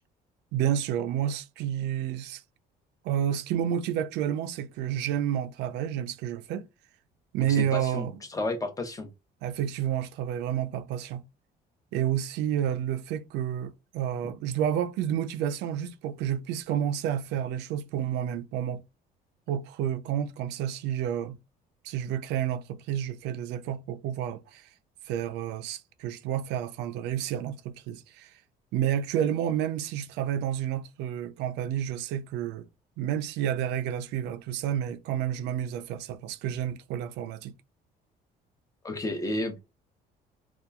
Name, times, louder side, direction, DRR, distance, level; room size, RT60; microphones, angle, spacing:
voice 1, 0.5-2.4 3.0-6.7 7.3-8.1 9.4-11.2 11.9-18.8 19.5-21.4 21.8-24.7 25.1-28.3 28.7-32.7 33.0-37.5, right 10 dB, 90° right, 0.4 m, -30 dB
voice 2, 7.4-9.1 38.8-39.6, left 2 dB, 20° left, 0.7 m, -32 dB
2.8 x 2.3 x 2.3 m
cardioid pair, 110°, 17 cm